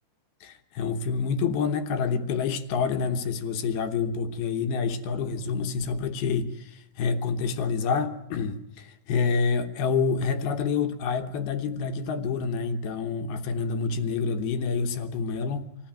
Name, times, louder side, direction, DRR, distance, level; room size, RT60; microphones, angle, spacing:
voice 1, 0.4-15.8, left 5 dB, 70° left, 7 dB, 2.5 m, -28 dB
25.5 x 16.0 x 9.1 m, 0.85 s
omnidirectional pair, 5.6 m